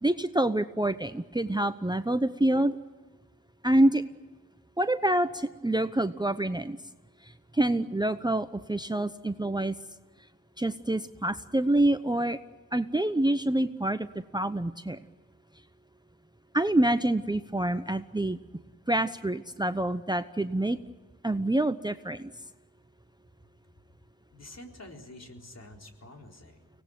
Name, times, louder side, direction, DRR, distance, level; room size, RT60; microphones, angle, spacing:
voice 1, 0.0-2.8 3.6-4.0 4.8-6.8 7.2-9.8 10.6-12.4 12.7-15.0 16.5-18.4 18.9-20.8 21.2-22.3, right 1 dB, 10° right, 11 dB, 0.9 m, -27 dB
voice 2, 24.3-26.7, left 1 dB, 50° left, 2 dB, 4.1 m, -48 dB
24.5 x 18.5 x 9.4 m, 1.3 s
cardioid pair, 55°, 34 cm